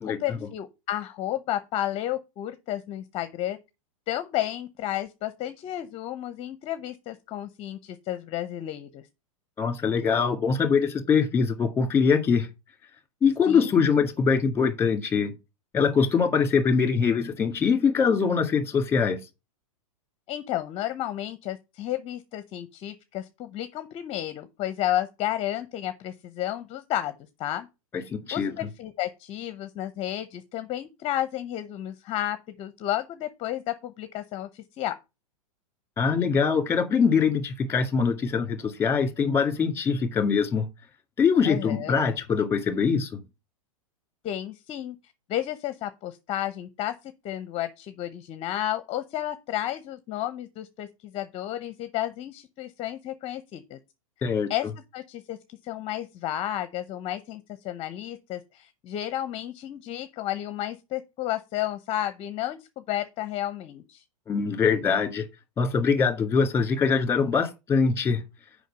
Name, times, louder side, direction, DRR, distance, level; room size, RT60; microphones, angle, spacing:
voice 1, 0.0-3.6 4.1-9.1 13.5-13.7 20.3-27.1 27.4-27.7 28.3-34.9 41.4-42.0 44.2-45.0 45.3-53.8 54.5-55.4 55.6-64.0, left 13 dB, 35° left, 0.7 m, -32 dB
voice 2, 9.6-12.5 13.2-15.3 15.7-19.2 27.9-28.5 36.0-40.7 41.2-43.2 54.2-54.5 64.3-65.2 65.6-68.2, left 5 dB, 15° left, 2.0 m, -23 dB
6.4 x 5.3 x 6.6 m
hypercardioid pair, 115°, 18 cm